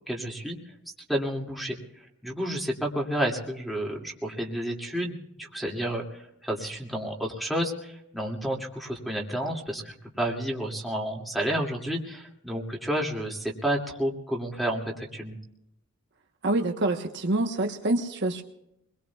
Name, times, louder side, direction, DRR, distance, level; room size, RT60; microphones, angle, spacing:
voice 1, 0.1-0.6 1.1-1.8 2.2-15.4, right 1 dB, ahead, -2 dB, 2.4 m, -30 dB
voice 2, 16.4-18.4, right 2 dB, 55° right, 3 dB, 1.2 m, -26 dB
25.0 x 22.0 x 2.4 m, 0.81 s
head